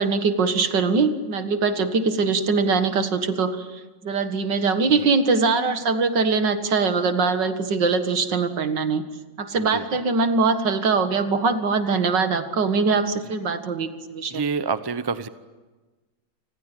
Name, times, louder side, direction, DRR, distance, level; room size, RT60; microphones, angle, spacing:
voice 1, 0.0-9.0 9.4-14.4, right 4 dB, 70° right, 8 dB, 2.4 m, -22 dB
voice 2, 14.3-15.3, right 5 dB, 25° right, 12 dB, 0.5 m, -27 dB
29.0 x 21.0 x 9.1 m, 1.3 s
omnidirectional pair, 2.0 m